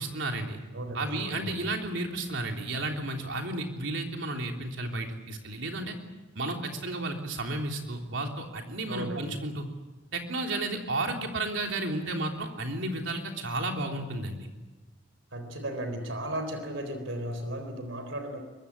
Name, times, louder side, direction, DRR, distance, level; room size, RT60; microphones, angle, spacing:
voice 1, 0.0-0.6 0.9-6.0 6.3-9.7 10.1-14.5, right 2 dB, 75° right, 2 dB, 3.5 m, -32 dB
voice 2, 0.7-1.6 8.9-9.3 15.3-18.4, right 1 dB, 90° right, 8 dB, 3.9 m, -35 dB
23.5 x 23.0 x 8.6 m, 1.2 s
head